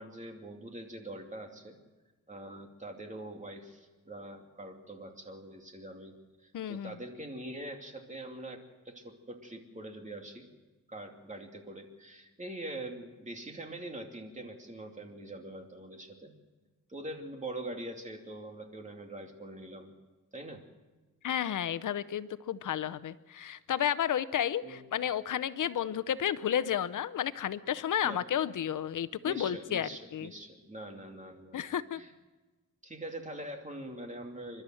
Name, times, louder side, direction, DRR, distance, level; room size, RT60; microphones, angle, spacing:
voice 1, 0.0-1.8 2.3-10.5 10.9-16.3 16.9-19.9 20.3-20.6 24.6-24.8 28.0-28.2 29.2-32.1 32.8-34.6, right 1 dB, 25° right, 3 dB, 2.7 m, -43 dB
voice 2, 6.5-6.9 21.2-30.3 31.5-32.0, left 9 dB, 75° left, 15 dB, 0.7 m, -32 dB
29.0 x 12.0 x 7.7 m, 1.2 s
wide cardioid pair, 115°, 31 cm